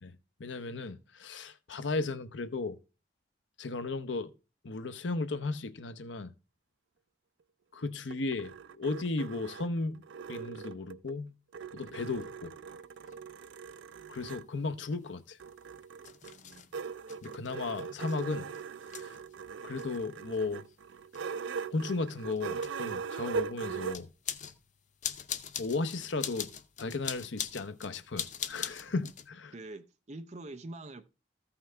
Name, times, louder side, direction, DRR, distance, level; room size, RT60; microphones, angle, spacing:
voice 1, 0.4-2.8 3.6-4.3 4.6-6.3 7.7-10.0 10.3-11.3 11.7-12.5 14.1-15.4 17.2-18.5 18.9-19.1 19.6-20.6 21.7-24.1 25.6-26.5 26.8-29.5, left 3 dB, 80° left, 0.8 m, -35 dB
sound 1, 7.8-11.2 11.5-14.5 15.4-24.0, right 5 dB, 80° right, 0.4 m, -40 dB
sound 2, 12.2-12.3 13.0-13.1 14.1-29.3, left 8 dB, 40° left, 0.6 m, -43 dB
voice 2, 16.2-16.6 29.5-31.0, right 2 dB, 35° right, 0.6 m, -45 dB
14.0 x 5.8 x 3.4 m
head